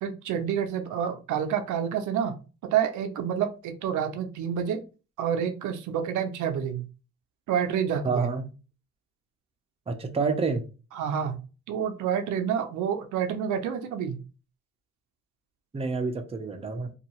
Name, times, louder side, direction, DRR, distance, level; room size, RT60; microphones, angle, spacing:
voice 1, 0.0-2.3 2.6-4.8 5.2-6.8 7.5-8.3 10.9-11.4 11.7-14.2, right 8 dB, 80° right, 0.5 m, -28 dB
voice 2, 8.0-8.4 9.9-10.7 15.7-16.9, right 4 dB, 20° right, 0.5 m, -28 dB
2.6 x 2.4 x 2.9 m
cardioid pair, 90°, 30 cm